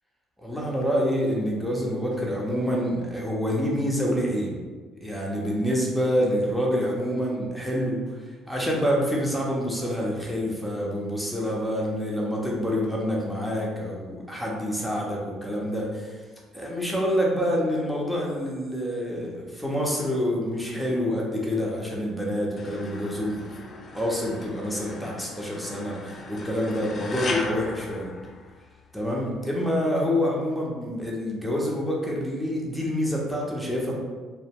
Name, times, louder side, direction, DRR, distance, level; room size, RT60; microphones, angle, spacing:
voice 1, 0.4-4.6 5.0-16.2 16.5-23.4 23.9-28.1 28.9-34.0, equal, ahead, -3 dB, 0.8 m, -27 dB
sound 1, 22.6-28.8, left 3 dB, 40° left, 0.3 m, -37 dB
2.1 x 2.0 x 3.4 m, 1.4 s
supercardioid pair, 65°, 0 cm